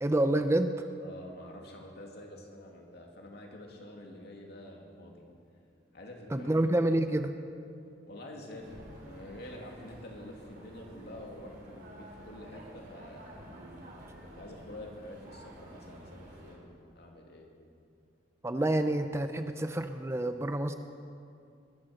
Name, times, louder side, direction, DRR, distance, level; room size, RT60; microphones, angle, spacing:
voice 1, 0.0-0.9 6.3-7.3 18.4-20.7, right 1 dB, 15° right, 8 dB, 0.5 m, -28 dB
voice 2, 1.0-5.2 5.9-6.5 8.1-13.5 14.2-17.5, left 1 dB, 60° left, 0 dB, 2.6 m, -47 dB
sound 1, 8.6-16.6, equal, 55° right, 3.7 m, -50 dB
21.0 x 10.5 x 6.5 m, 2.5 s
head